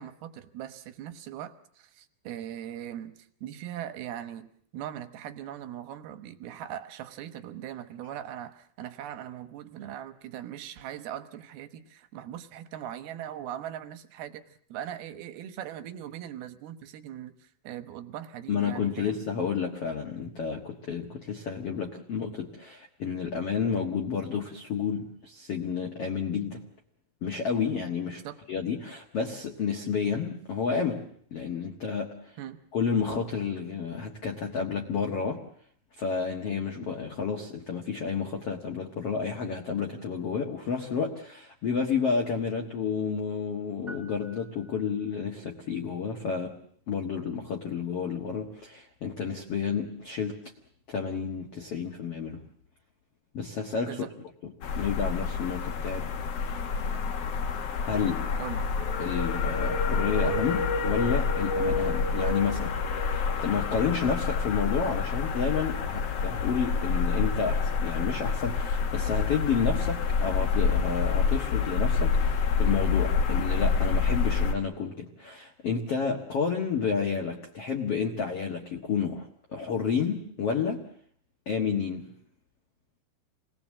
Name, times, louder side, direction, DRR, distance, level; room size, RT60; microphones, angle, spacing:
voice 1, 0.0-19.2 28.2-28.4 32.4-32.6 53.9-54.1 58.4-58.7, right 11 dB, 70° right, 10 dB, 2.7 m, -40 dB
voice 2, 18.5-26.6 27.2-28.2 28.5-32.3 32.7-35.4 36.0-46.5 46.9-50.4 50.9-52.4 53.3-54.0 54.8-56.1 57.8-58.3 59.0-62.7 63.0-80.8 81.4-82.1, left 6 dB, 65° left, 2 dB, 1.4 m, -30 dB
sound 1, 43.9-45.3, right 3 dB, ahead, 1.8 m, -49 dB
sound 2, 54.6-74.5, left 5 dB, 85° left, 1.3 m, -27 dB
27.5 x 20.0 x 7.5 m, 0.62 s
omnidirectional pair, 5.2 m